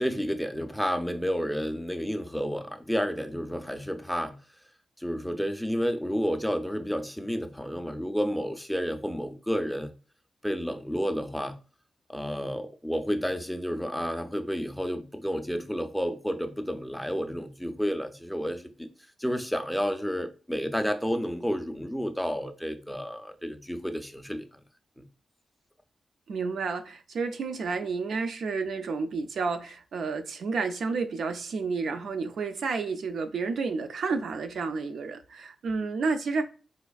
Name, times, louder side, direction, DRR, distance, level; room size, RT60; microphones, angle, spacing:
voice 1, 0.0-4.4 5.0-9.9 10.4-11.6 12.1-18.9 19.2-24.6 25.0-25.1, equal, 5° left, 0.4 m, -31 dB
voice 2, 26.3-36.4, right 4 dB, 80° right, 0.4 m, -30 dB
4.1 x 2.4 x 2.3 m
wide cardioid pair, 135°, 0 cm